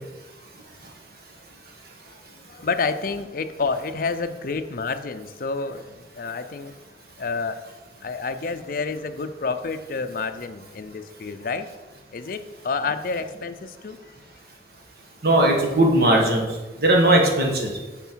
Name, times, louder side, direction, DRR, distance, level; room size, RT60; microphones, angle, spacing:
voice 1, 2.5-6.7 7.2-7.6 8.0-11.7 12.1-14.0, left 4 dB, 50° left, 9 dB, 0.5 m, -29 dB
voice 2, 15.2-16.4 16.8-17.7, right 1 dB, 55° right, 1 dB, 1.4 m, -18 dB
9.3 x 4.2 x 4.5 m, 1.2 s
head